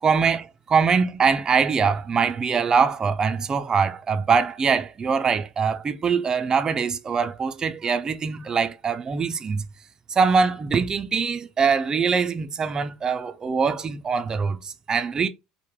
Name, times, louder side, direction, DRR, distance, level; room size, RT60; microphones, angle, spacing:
voice 1, 0.0-9.7 10.1-15.3, right 5 dB, 25° right, 0.3 m, -23 dB
3.1 x 2.0 x 2.3 m
hypercardioid pair, 85°, 3 cm